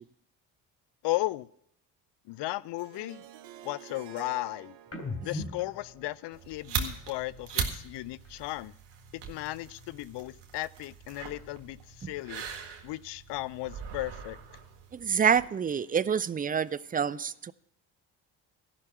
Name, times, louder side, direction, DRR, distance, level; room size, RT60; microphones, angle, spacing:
voice 1, 1.0-1.5 2.3-3.2 3.6-4.8 5.2-8.7 9.1-12.4 12.8-14.4, left 18 dB, 65° left, 0.6 m, -35 dB
Harp, 2.8-7.7, right 11 dB, 85° right, 0.8 m, -52 dB
sound 1, 4.9-8.4 8.8-10.6 10.9-12.7 13.1-14.9, left 3 dB, 35° left, 3.3 m, -46 dB
sound 2, 6.3-15.5, right 7 dB, 65° right, 1.8 m, -40 dB
voice 2, 14.9-17.5, right 7 dB, 20° right, 0.4 m, -27 dB
14.0 x 6.0 x 7.8 m
supercardioid pair, 60°, 46 cm